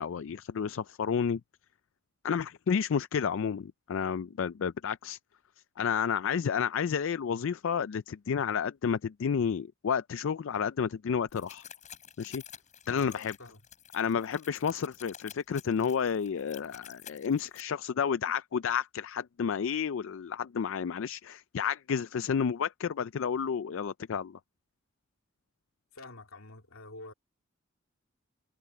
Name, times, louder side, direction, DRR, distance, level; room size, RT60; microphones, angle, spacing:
voice 1, 0.0-1.4 2.2-5.2 5.8-11.6 12.2-12.4 12.9-13.4 13.9-24.4, left 7 dB, 65° left, 0.4 m, -31 dB
sound 1, 11.3-17.6, left 9 dB, 35° left, 7.8 m, -50 dB
voice 2, 12.9-13.6 25.9-27.1, left 2 dB, 80° left, 2.6 m, -48 dB
head